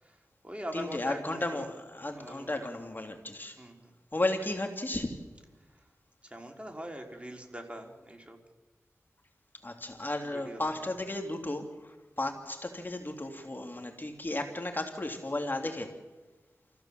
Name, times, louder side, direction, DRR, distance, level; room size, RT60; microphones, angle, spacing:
voice 1, 0.0-1.7 2.1-2.7 3.1-3.9 5.7-5.9 6.2-8.4 10.2-10.9, equal, 20° right, 2 dB, 3.7 m, -43 dB
voice 2, 0.7-3.6 4.1-5.2 9.6-15.9, left 2 dB, 35° left, 4 dB, 2.4 m, -34 dB
28.0 x 15.0 x 7.4 m, 1.3 s
cardioid pair, 40°, 6 cm